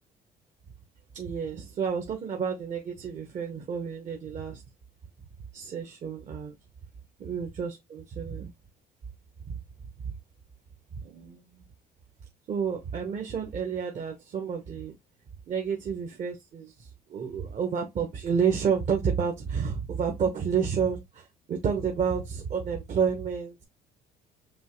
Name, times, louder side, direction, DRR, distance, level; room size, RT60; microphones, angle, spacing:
voice 1, 1.1-4.6 5.5-6.5 7.2-8.5 9.5-9.6 10.9-11.6 12.5-14.9 15.5-23.6, right 6 dB, 45° right, 1.1 m, -30 dB
5.4 x 3.0 x 3.1 m
cardioid pair, 110°, 17 cm